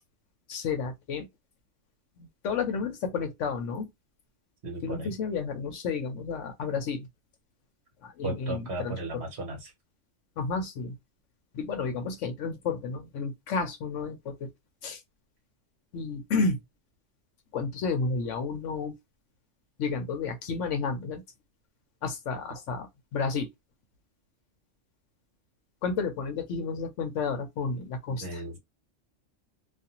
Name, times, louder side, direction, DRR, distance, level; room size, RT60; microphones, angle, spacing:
voice 1, 0.5-1.3 2.2-3.9 4.8-7.1 8.0-9.2 10.4-11.0 11.5-14.5 14.8-15.0 15.9-16.6 17.5-18.9 19.8-21.2 22.0-23.5 25.8-28.4, left 4 dB, 70° left, 1.0 m, -31 dB
voice 2, 4.6-5.1 8.2-9.7 28.1-28.6, right 1 dB, 55° right, 1.2 m, -36 dB
2.5 x 2.4 x 2.8 m
omnidirectional pair, 1.3 m